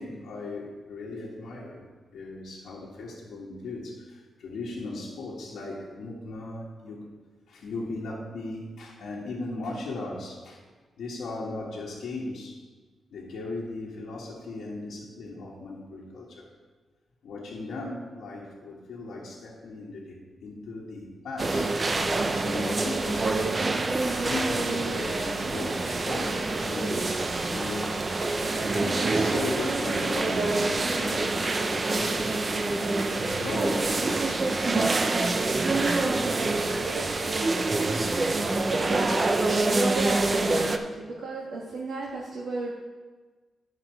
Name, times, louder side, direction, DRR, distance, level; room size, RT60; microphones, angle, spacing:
voice 1, 0.0-1.8 2.1-7.1 7.5-10.6 11.0-12.6 13.1-16.5 17.2-21.8 22.3-23.4 24.2-28.0 28.4-32.7 33.0-35.3 36.2-36.3, left 2 dB, 70° left, -6 dB, 1.6 m, -37 dB
sound 1, 21.4-40.8, right 2 dB, 25° right, 0.5 m, -26 dB
voice 2, 38.7-42.7, right 3 dB, 90° right, -4 dB, 1.3 m, -33 dB
11.5 x 5.9 x 4.5 m, 1.3 s
wide cardioid pair, 175°, 0 cm